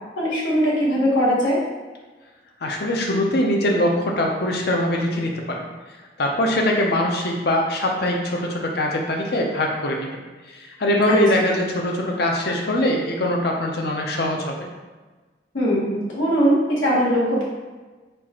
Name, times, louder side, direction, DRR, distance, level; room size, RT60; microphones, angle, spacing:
voice 1, 0.2-1.6 11.1-11.2 15.5-17.4, equal, 80° left, -6 dB, 1.4 m, -20 dB
voice 2, 2.6-5.7 6.2-10.2 10.5-14.7, left 1 dB, 55° left, 0 dB, 0.6 m, -22 dB
4.4 x 2.5 x 4.3 m, 1.3 s
head